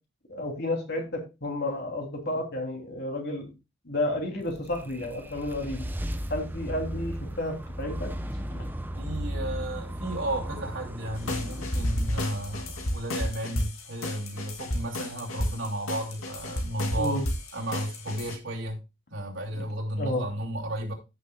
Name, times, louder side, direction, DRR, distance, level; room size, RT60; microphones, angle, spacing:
voice 1, 0.3-3.5 3.8-5.9 6.3-8.1 8.5-8.6 17.0-17.3 19.5-19.7 20.0-20.2, left 1 dB, 50° left, 3.0 m, -31 dB
sound 1, 4.3-13.5, equal, 10° right, 0.6 m, -36 dB
voice 2, 8.9-17.2 17.5-18.8 19.1-20.9, right 1 dB, 65° right, 2.9 m, -33 dB
sound 2, 11.2-18.4, left 1 dB, 85° left, 2.5 m, -32 dB
15.5 x 6.7 x 2.3 m
head